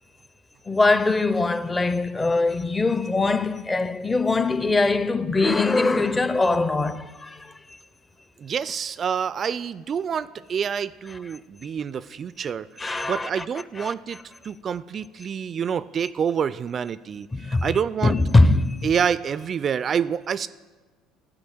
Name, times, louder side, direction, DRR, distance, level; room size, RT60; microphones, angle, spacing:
voice 1, 0.7-7.5 12.8-13.4 13.8-13.9 17.3-17.8 18.0-18.9, left 3 dB, 20° left, 0.6 m, -22 dB
voice 2, 8.4-14.2 14.4-18.2 18.8-20.5, right 7 dB, 40° right, 0.3 m, -27 dB
14.5 x 5.0 x 7.7 m
figure-of-eight pair, 60°, 0 cm